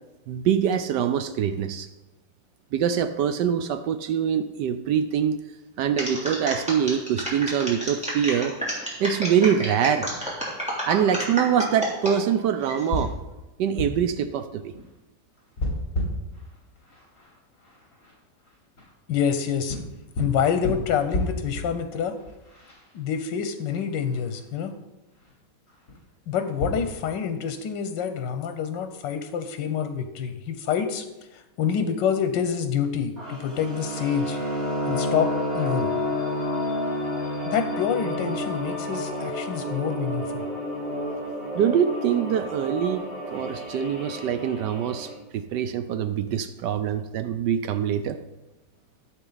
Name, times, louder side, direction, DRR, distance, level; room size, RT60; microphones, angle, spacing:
voice 1, 0.3-1.9 2.7-5.4 5.8-8.6 9.0-10.1 10.9-13.1 13.6-14.7 41.5-48.2, right 8 dB, 75° right, 11 dB, 1.2 m, -24 dB
sound 1, 6.0-12.1 12.6-13.0, equal, 5° right, 3.2 m, -30 dB
sound 2, 6.8-26.7, left 1 dB, 45° left, 3.9 m, -36 dB
voice 2, 19.1-19.8 20.2-22.2 22.9-24.7 26.3-31.0 31.3-34.4 34.9-35.9 37.4-40.4, left 7 dB, 85° left, 8 dB, 1.4 m, -27 dB
sound 3, 33.2-45.1, left 1 dB, 50° right, 3.9 m, -30 dB
14.0 x 7.7 x 4.0 m, 1.1 s
omnidirectional pair, 1.9 m